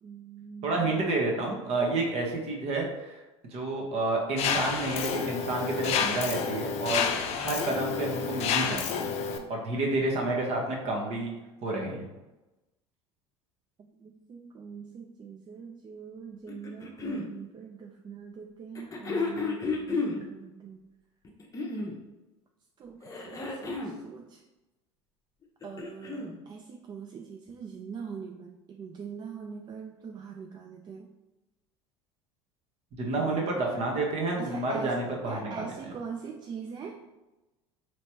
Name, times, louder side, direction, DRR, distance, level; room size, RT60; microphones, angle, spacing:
voice 1, 0.0-1.0 13.8-20.8 21.7-21.9 22.8-24.4 25.6-31.1 33.1-33.7 34.4-37.1, right 6 dB, 30° right, 3 dB, 0.4 m, -43 dB
voice 2, 0.6-3.2 3.5-7.1 7.3-9.1 9.5-11.3 11.6-12.1 33.0-35.6, right 2 dB, 45° right, 0 dB, 1.2 m, -30 dB
Mechanisms, 4.4-9.4, left 6 dB, 45° left, 0.5 m, -30 dB
sound 1, 16.5-17.3 18.8-20.2 21.2-22.0 23.0-24.0 25.4-26.3 27.5-27.6, left 3 dB, 20° left, 0.8 m, -32 dB
4.1 x 3.2 x 2.9 m, 1.0 s
hypercardioid pair, 75°, 15 cm